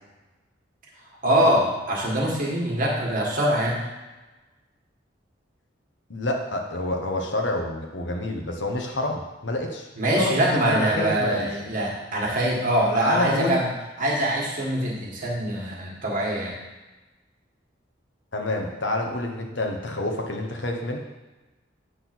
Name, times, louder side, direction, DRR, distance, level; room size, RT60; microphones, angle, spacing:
voice 1, 1.2-3.8 10.0-13.7 14.0-16.6, right 1 dB, 45° right, -2 dB, 2.0 m, -23 dB
voice 2, 6.1-9.9 10.2-10.4 10.7-11.5 12.9-13.6 18.3-21.0, left 1 dB, 70° left, 2 dB, 1.2 m, -28 dB
9.0 x 4.3 x 6.1 m, 1.1 s
head